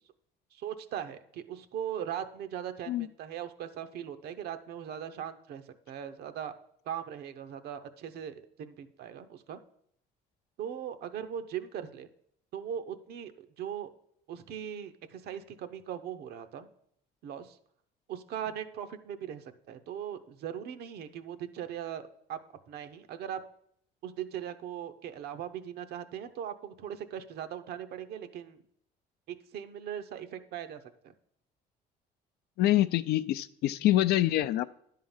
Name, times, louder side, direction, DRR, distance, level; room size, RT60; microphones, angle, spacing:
voice 1, 0.5-6.5 6.9-9.6 10.6-12.1 12.5-13.9 14.3-16.7 17.2-17.6 18.1-22.4 22.7-23.4 24.0-28.6 29.3-30.8, right 9 dB, 70° right, 9 dB, 0.8 m, -39 dB
voice 2, 32.6-34.6, left 14 dB, 75° left, 14 dB, 0.4 m, -25 dB
10.5 x 3.8 x 7.2 m, 0.70 s
cardioid pair, 110°, 17 cm